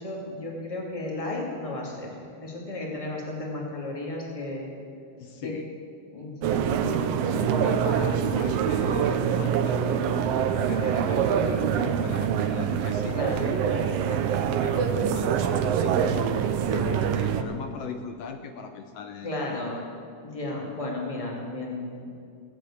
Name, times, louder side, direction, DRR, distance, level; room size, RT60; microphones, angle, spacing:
voice 1, 0.0-2.1 2.4-4.7 5.4-5.5 6.1-6.7 7.2-7.7 13.1-13.5 19.2-19.8 20.2-22.1, left 2 dB, 10° left, -2 dB, 2.2 m, -34 dB
voice 2, 5.2-5.7 7.5-9.8 10.7-16.2 16.7-19.6, left 6 dB, 75° left, 7 dB, 1.5 m, -39 dB
sound 1, 6.4-17.4, right 7 dB, 70° right, 1.6 m, -25 dB
16.5 x 7.8 x 8.6 m, 2.5 s
omnidirectional pair, 3.4 m